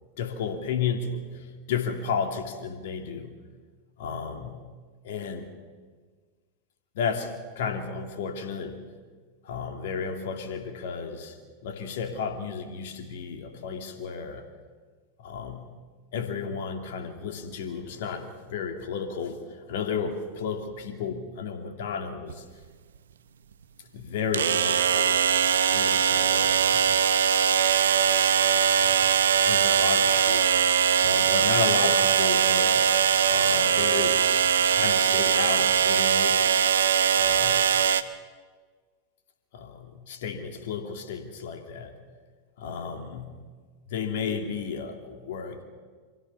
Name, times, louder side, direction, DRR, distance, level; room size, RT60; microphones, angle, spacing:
voice 1, 0.2-3.3 4.0-4.6 5.0-5.5 6.9-8.8 9.4-11.4 11.6-14.4 15.2-15.6 16.1-22.4 23.9-25.2 25.7-27.1 28.8-29.2 29.5-30.5 31.0-32.9 33.3-34.2 34.5-36.5 37.2-37.7 39.5-42.0 42.6-43.4 43.9-45.6, left 6 dB, 60° left, 5 dB, 2.7 m, -33 dB
sound 1, 22.3-22.4 24.3-38.0, right 8 dB, 75° right, 0.9 m, -21 dB
25.0 x 16.5 x 7.2 m, 1.5 s
figure-of-eight pair, 90°, 0 cm